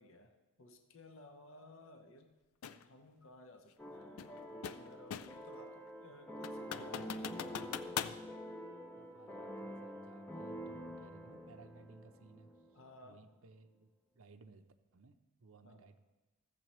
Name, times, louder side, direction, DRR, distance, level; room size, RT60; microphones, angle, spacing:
voice 1, 0.0-2.3 2.8-7.7 12.7-13.2 15.6-15.8, left 2 dB, 60° left, 5 dB, 0.9 m, -57 dB
sound 1, 2.6-2.8 4.2-5.5 5.9-6.0 6.4-8.2, left 8 dB, 80° left, 0.4 m, -42 dB
sound 2, 3.8-12.8, equal, 10° left, 0.6 m, -47 dB
voice 2, 9.0-12.6 13.0-13.9 14.1-14.6 14.9-16.0, right 3 dB, 70° right, 9 dB, 0.6 m, -60 dB
15.5 x 7.5 x 3.1 m, 1.2 s
head